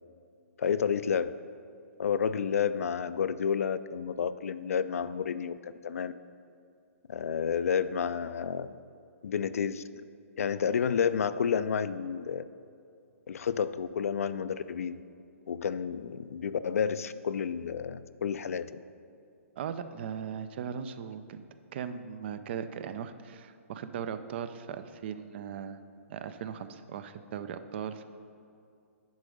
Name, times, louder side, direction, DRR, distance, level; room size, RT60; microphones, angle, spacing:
voice 1, 0.6-1.3 2.0-6.1 7.1-8.7 9.2-9.8 10.4-12.4 13.3-15.0 15.5-18.7, left 7 dB, 75° left, 14 dB, 0.3 m, -30 dB
voice 2, 19.6-21.4 21.7-25.8 26.1-28.0, right 8 dB, 50° right, 11 dB, 0.5 m, -38 dB
10.0 x 3.8 x 5.2 m, 2.5 s
hypercardioid pair, 135°, 8 cm